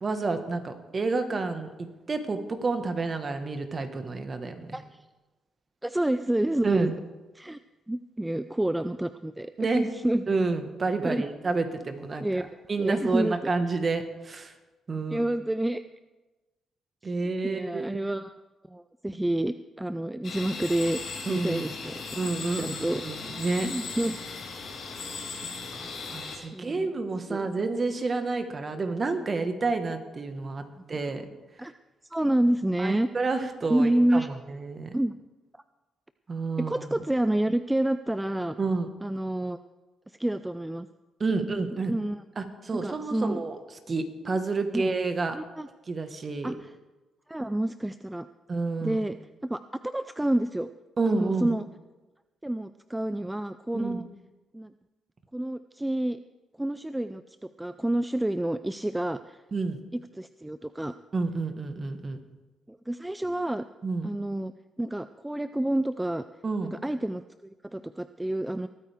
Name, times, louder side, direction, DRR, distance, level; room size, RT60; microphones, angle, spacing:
voice 1, 0.0-4.7 6.6-6.9 9.6-9.9 10.3-12.4 12.7-14.5 14.9-15.2 17.0-18.1 21.3-21.6 22.2-23.7 25.7-31.2 32.8-34.9 36.3-37.0 38.6-38.9 41.2-41.9 42.4-43.6 43.9-45.4 45.9-46.5 48.5-49.0 51.0-51.5 53.7-54.0 59.5-59.8 61.1-62.2 63.8-64.1 66.4-66.7, right 3 dB, 35° right, 7 dB, 1.5 m, -29 dB
voice 2, 5.8-6.9 7.3-7.6 7.9-10.2 11.0-11.3 12.2-12.5 12.8-13.5 15.1-15.8 17.0-18.4 18.7-21.0 21.3-22.0 22.4-23.0 23.6-24.2 26.5-26.9 27.3-27.5 30.8-30.9 31.6-31.7 32.0-33.1 33.7-34.3 34.9-35.1 35.5-35.6 36.6-38.6 39.0-39.6 40.1-40.9 41.3-41.5 41.9-42.2 42.8-43.4 44.7-44.9 45.3-45.7 46.4-46.8 47.3-48.3 48.8-49.2 49.4-50.7 51.1-51.7 52.4-54.1 54.5-54.7 55.3-56.2 56.6-59.4 59.9-61.0 62.7-63.6 64.0-64.5 64.8-66.2 66.6-68.7, right 1 dB, 10° right, 12 dB, 0.4 m, -29 dB
sound 1, 20.2-26.4, left 4 dB, 60° left, 3.8 m, -37 dB
21.5 x 9.1 x 3.6 m, 1.2 s
cardioid pair, 90°, 0 cm